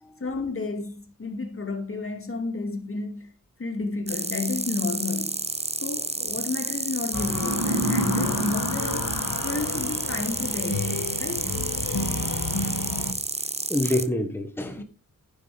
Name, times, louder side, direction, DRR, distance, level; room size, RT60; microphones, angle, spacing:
voice 1, 0.2-3.3 3.6-5.4 5.8-9.1 9.4-11.5 14.8-14.9, left 3 dB, 40° left, 2.3 m, -31 dB
sound 1, 4.1-14.1, right 3 dB, 20° right, 0.8 m, -30 dB
sound 2, 7.1-13.1, left 3 dB, 70° left, 1.8 m, -31 dB
sound 3, 7.2-10.3, right 1 dB, 65° right, 2.2 m, -30 dB
voice 2, 13.7-14.8, left 1 dB, 5° left, 1.3 m, -27 dB
10.5 x 9.6 x 3.4 m
wide cardioid pair, 100°, 34 cm